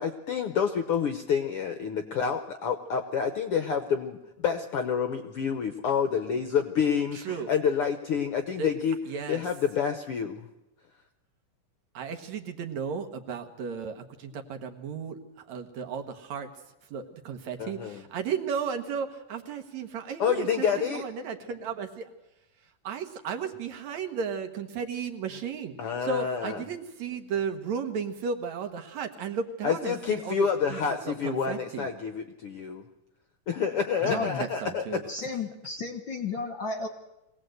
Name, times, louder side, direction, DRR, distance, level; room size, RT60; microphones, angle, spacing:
voice 1, 0.0-4.2 4.4-9.0 9.3-10.5 17.6-18.0 20.2-21.0 25.8-26.6 29.6-32.8 33.5-34.8, left 7 dB, 70° left, 7 dB, 1.4 m, -28 dB
voice 2, 7.1-7.5 8.6-8.7 9.1-9.4 11.9-16.5 16.9-22.1 22.8-31.9 34.0-35.0, right 6 dB, 65° right, 6 dB, 2.6 m, -34 dB
voice 3, 34.1-34.5 35.1-36.9, left 4 dB, 50° left, 4 dB, 1.5 m, -33 dB
23.0 x 17.5 x 7.9 m, 0.93 s
omnidirectional pair, 3.7 m